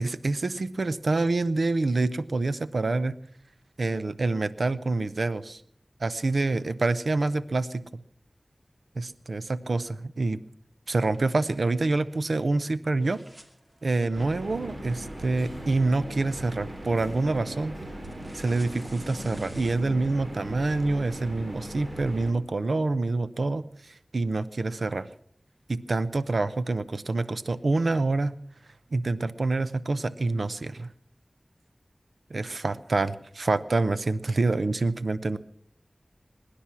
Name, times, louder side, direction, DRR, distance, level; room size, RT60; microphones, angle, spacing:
voice 1, 0.0-3.1 3.8-5.6 6.0-7.8 9.0-10.4 10.9-13.2 13.8-17.7 18.3-25.1 25.7-28.3 28.9-30.9 32.3-35.4, right 3 dB, 80° right, 14 dB, 0.7 m, -27 dB
sound 1, 10.9-12.7 13.0-19.8, equal, 25° right, 2.6 m, -55 dB
sound 2, 14.1-22.3, right 1 dB, 50° right, 2.8 m, -39 dB
22.5 x 10.0 x 6.0 m, 0.65 s
wide cardioid pair, 65°, 0 cm